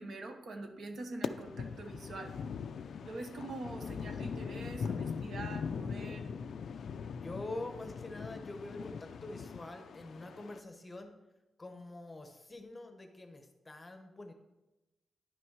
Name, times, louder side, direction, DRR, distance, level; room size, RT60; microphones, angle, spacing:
voice 1, 0.0-2.3 3.0-6.3, right 2 dB, 50° right, 5 dB, 1.0 m, -44 dB
sound 1, 1.2-10.6, left 6 dB, 60° left, 0.4 m, -41 dB
voice 2, 7.2-11.1 11.6-14.3, left 2 dB, 15° left, 6 dB, 0.9 m, -45 dB
10.5 x 6.0 x 4.7 m, 1.0 s
wide cardioid pair, 165°, 0 cm